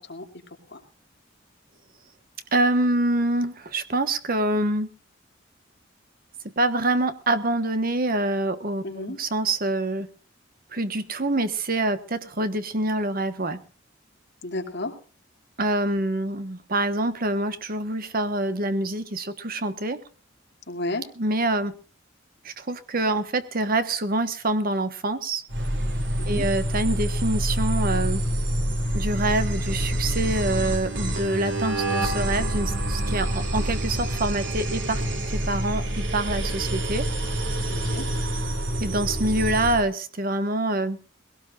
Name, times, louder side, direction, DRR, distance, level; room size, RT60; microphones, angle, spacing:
voice 1, 2.5-4.9 6.6-10.1 10.7-13.6 15.6-20.0 21.2-21.7 22.4-25.4 26.3-28.2 28.9-35.0 35.3-37.1 38.8-41.0, right 2 dB, 50° right, 10 dB, 1.4 m, -26 dB
voice 2, 8.8-9.2 14.4-14.9 20.7-21.0 26.2-26.4 37.7-38.0, left 2 dB, 60° left, 2 dB, 2.8 m, -32 dB
sound 1, 25.5-39.8, right 1 dB, 65° right, 3.0 m, -27 dB
21.0 x 17.5 x 2.5 m, 0.35 s
head